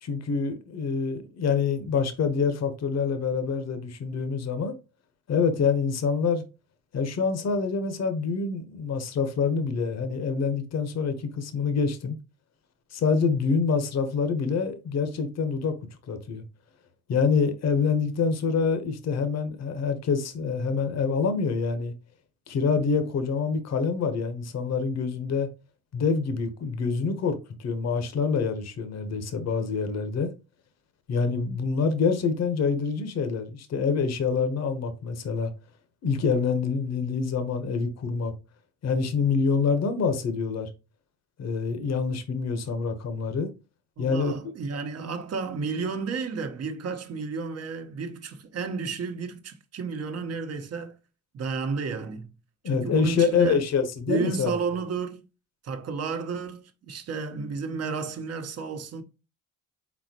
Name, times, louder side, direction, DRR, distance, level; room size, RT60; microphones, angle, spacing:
voice 1, 0.0-4.7 5.3-6.4 6.9-12.2 12.9-15.7 16.1-16.4 17.1-21.9 22.5-25.5 25.9-30.3 31.1-35.5 36.0-38.3 38.8-40.7 41.4-43.5 44.0-44.3 52.6-54.5, left 5 dB, 60° left, 0.9 m, -26 dB
voice 2, 44.0-51.0 51.3-52.3 52.6-53.6 54.1-55.2 55.6-59.0, right 5 dB, 55° right, 0.9 m, -32 dB
4.2 x 4.1 x 2.8 m
cardioid pair, 90°, 30 cm